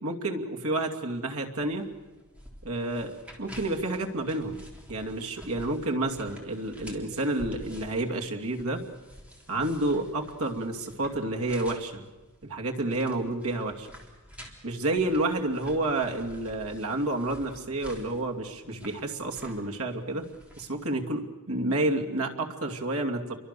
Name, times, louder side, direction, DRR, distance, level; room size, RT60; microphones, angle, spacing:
voice 1, 0.0-1.9 2.6-4.6 4.9-8.8 9.5-12.0 12.4-13.9 14.6-20.2 20.6-23.4, right 2 dB, 75° right, 2 dB, 2.6 m, -30 dB
sound 1, 1.6-20.8, equal, 5° right, 3.5 m, -50 dB
29.5 x 24.0 x 6.9 m, 1.2 s
head